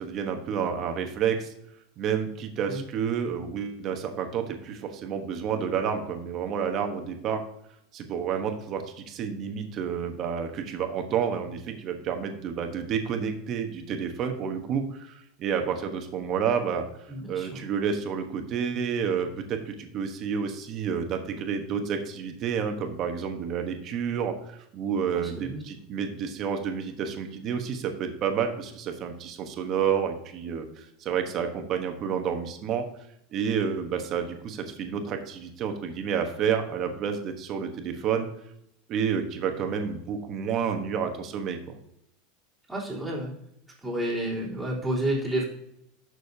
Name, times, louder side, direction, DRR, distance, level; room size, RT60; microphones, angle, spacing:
voice 1, 0.0-1.5 2.0-7.4 7.9-32.8 33.3-38.3 38.9-41.8, right 7 dB, 35° right, 5 dB, 1.0 m, -30 dB
voice 2, 17.1-17.6 25.1-25.6 42.7-43.3 43.8-45.4, right 1 dB, ahead, -9 dB, 3.5 m, -30 dB
11.5 x 6.3 x 2.7 m, 0.76 s
supercardioid pair, 150°, 0 cm